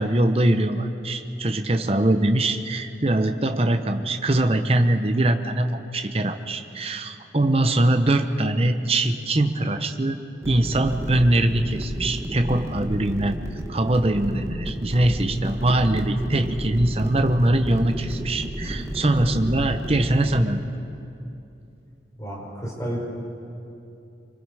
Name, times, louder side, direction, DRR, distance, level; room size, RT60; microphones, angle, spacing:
voice 1, 0.0-13.4 13.7-20.7, right 1 dB, 35° right, 7 dB, 0.8 m, -22 dB
sound 1, 10.4-20.4, equal, 15° right, 1.3 m, -32 dB
voice 2, 22.2-23.0, right 1 dB, 20° left, -4 dB, 5.0 m, -31 dB
25.5 x 23.5 x 4.8 m, 2.7 s
head